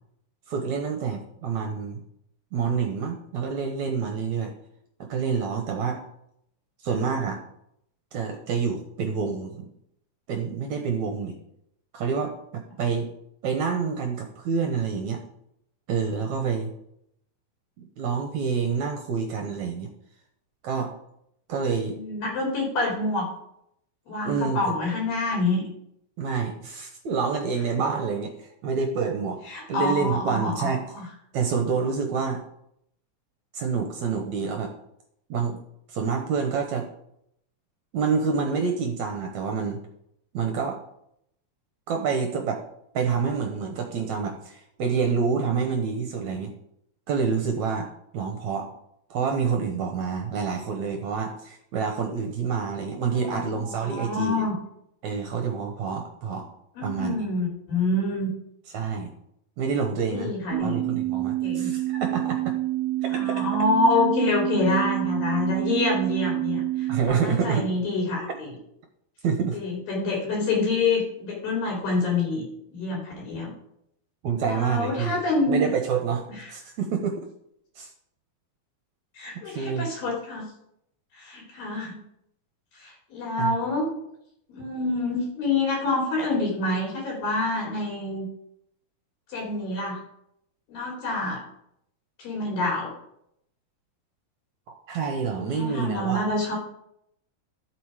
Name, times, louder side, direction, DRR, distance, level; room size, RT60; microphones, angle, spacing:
voice 1, 0.5-2.0 2.5-4.5 5.1-6.0 6.8-7.4 8.1-9.7 10.3-11.4 11.9-13.1 13.4-15.2 15.9-16.7 18.0-19.9 20.6-20.9 21.5-22.0 24.3-24.7 26.2-29.4 29.7-30.8 31.3-32.4 33.5-34.7 35.3-35.6 35.9-36.9 37.9-39.8 40.3-40.8 41.9-42.6 42.9-46.5 47.1-47.9 48.1-48.7 49.1-54.4 55.0-56.5 56.8-57.1 58.7-59.1 59.6-62.5 63.0-63.5 66.9-67.7 69.2-69.6 74.2-75.2 75.5-77.2 77.8-77.9 79.5-79.9 83.4-83.6 94.9-96.3, right 5 dB, 65° right, 4 dB, 2.0 m, -27 dB
voice 2, 21.9-23.3 24.1-25.7 29.5-31.0 53.1-54.5 56.8-58.3 60.1-60.8 61.4-61.7 63.1-68.5 69.5-72.4 72.7-73.5 74.4-75.6 79.2-80.5 81.1-82.0 82.8-83.9 84.5-88.3 89.3-90.0 90.7-91.4 92.2-92.9 95.4-96.6, left 2 dB, 70° left, -2 dB, 4.5 m, -27 dB
sound 1, 60.5-67.0, right 16 dB, 85° right, 2.3 m, -28 dB
12.5 x 7.8 x 4.9 m, 0.77 s
omnidirectional pair, 4.2 m